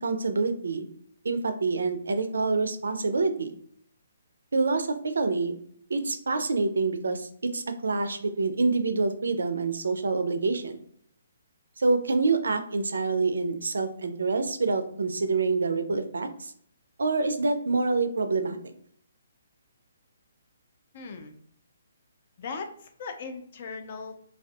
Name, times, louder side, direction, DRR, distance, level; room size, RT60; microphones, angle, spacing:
voice 1, 0.0-0.9 1.2-3.5 4.5-5.5 5.9-10.8 11.8-16.5 17.0-18.6, right 3 dB, 80° right, 8 dB, 0.3 m, -26 dB
voice 2, 20.9-21.4 22.4-24.1, left 4 dB, 45° left, 6 dB, 0.4 m, -38 dB
2.5 x 2.2 x 2.3 m, 0.63 s
hypercardioid pair, 145°, 0 cm